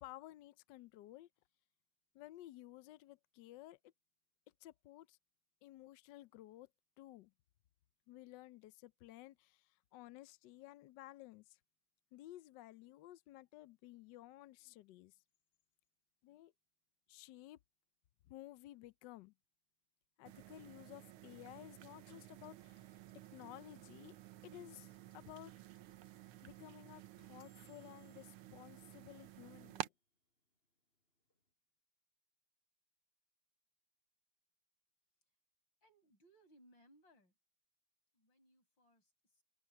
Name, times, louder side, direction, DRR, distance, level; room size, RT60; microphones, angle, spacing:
voice 1, 0.0-1.3 2.1-3.9 4.6-5.2 5.6-6.7 7.0-7.3 8.1-11.6 12.1-15.2 16.2-16.5 17.1-17.6 18.3-19.3 20.2-23.0 23.3-24.1 24.4-25.5 26.4-29.9, left 15 dB, 75° left, 1.0 m, -55 dB
sound 1, 20.3-29.9, right 13 dB, 90° right, 1.7 m, -52 dB
sound 2, 22.4-30.2 31.3-31.4, left 1 dB, 25° left, 6.1 m, -79 dB
voice 2, 35.8-37.4 38.1-39.4, equal, 60° left, 8.2 m, -68 dB
open air
omnidirectional pair, 2.3 m